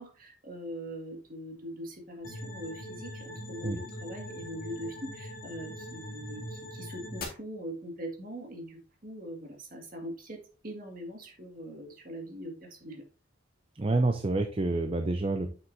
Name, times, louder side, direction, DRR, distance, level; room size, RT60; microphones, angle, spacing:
voice 1, 0.0-13.0, equal, 45° right, 2 dB, 1.9 m, -42 dB
sound 1, 2.2-7.2, left 1 dB, 45° left, 2.0 m, -42 dB
voice 2, 13.8-15.5, right 2 dB, 30° right, 7 dB, 0.5 m, -28 dB
7.3 x 6.3 x 2.7 m, 0.36 s
head